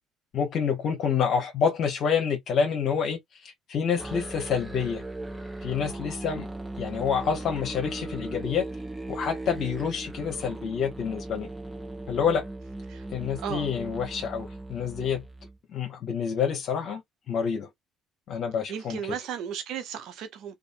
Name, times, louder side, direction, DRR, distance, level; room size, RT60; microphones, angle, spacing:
voice 1, 0.3-5.0 5.6-6.5 6.8-8.7 9.1-11.5 12.1-12.5 13.1-15.2 15.7-17.0 17.3-17.7 18.3-19.0, left 7 dB, 60° left, 1.0 m, -28 dB
Musical instrument, 4.0-15.6, right 2 dB, 10° right, 1.0 m, -38 dB
voice 2, 13.4-13.7 18.7-20.5, right 8 dB, 65° right, 0.7 m, -35 dB
2.5 x 2.5 x 2.5 m
hypercardioid pair, 65°, 0 cm